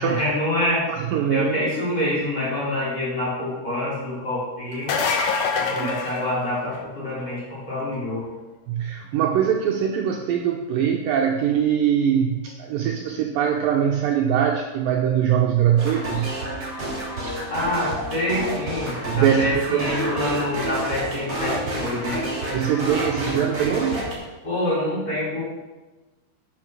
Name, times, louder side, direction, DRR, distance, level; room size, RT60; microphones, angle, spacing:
voice 1, 0.0-0.8 1.3-4.9 5.5-8.3 17.5-22.2 24.4-25.5, left 1 dB, 25° left, -7 dB, 4.6 m, -26 dB
voice 2, 0.9-1.7 5.8-5.9 8.7-16.3 19.1-19.9 22.5-24.1, right 9 dB, 75° right, 1 dB, 2.2 m, -22 dB
sound 1, 4.7-7.0 12.5-12.6 14.4-14.5, left 5 dB, 80° left, 1.6 m, -25 dB
sound 2, 15.8-24.1, right 1 dB, 30° right, 3.3 m, -29 dB
10.5 x 6.1 x 6.2 m, 1.2 s
omnidirectional pair, 4.6 m